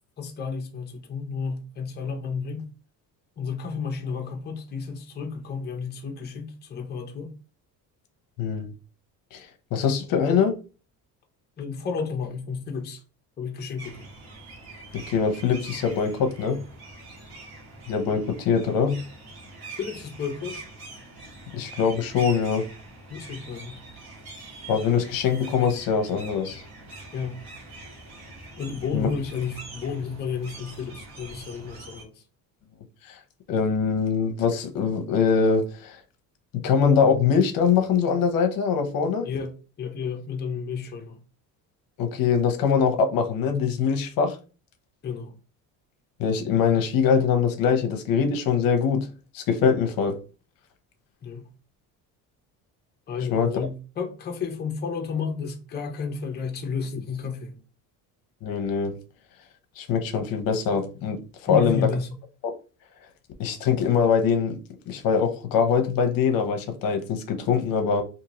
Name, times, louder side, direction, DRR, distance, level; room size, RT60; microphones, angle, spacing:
voice 1, 0.2-2.6 3.4-7.3 11.6-13.0 13.4-14.1 19.8-20.6 23.1-23.8 27.1-27.4 28.6-32.2 39.2-41.2 45.0-45.3 51.2-51.5 53.1-57.6 61.5-62.1, left 5 dB, 25° left, 0.6 m, -32 dB
voice 2, 8.4-8.7 9.3-10.5 14.9-16.6 17.9-19.0 21.5-22.7 24.7-26.6 28.9-29.1 33.0-33.2 33.5-36.0 36.5-39.3 42.0-44.4 46.2-49.1 49.3-50.2 53.3-53.7 58.4-59.0 59.8-61.9 62.4-62.5 63.4-64.6 64.9-68.0, left 6 dB, 65° left, 0.7 m, -23 dB
sound 1, 13.8-32.0, right 2 dB, 90° right, 1.5 m, -44 dB
3.6 x 2.7 x 2.9 m
cardioid pair, 135°, 37 cm